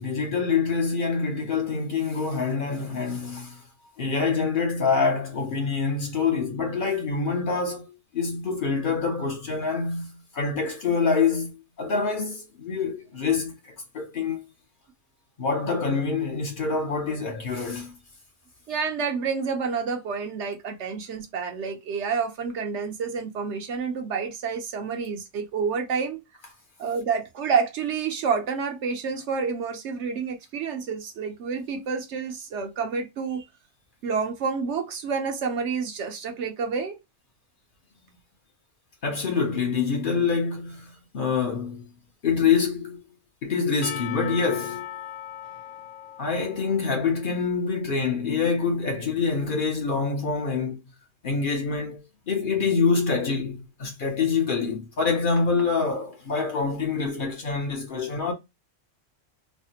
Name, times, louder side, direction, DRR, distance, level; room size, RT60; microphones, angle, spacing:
voice 1, 0.0-3.6 4.0-7.8 8.1-14.4 15.4-18.0 39.0-41.9 42.2-43.0 43.4-44.9 46.2-50.8 51.2-58.3, left 5 dB, 50° left, 0.8 m, -26 dB
voice 2, 18.7-26.2 26.8-33.4 34.0-37.0, right 5 dB, 70° right, 1.0 m, -29 dB
Percussion / Church bell, 43.8-47.7, left 10 dB, 85° left, 0.9 m, -39 dB
3.3 x 2.1 x 2.7 m
omnidirectional pair, 1.2 m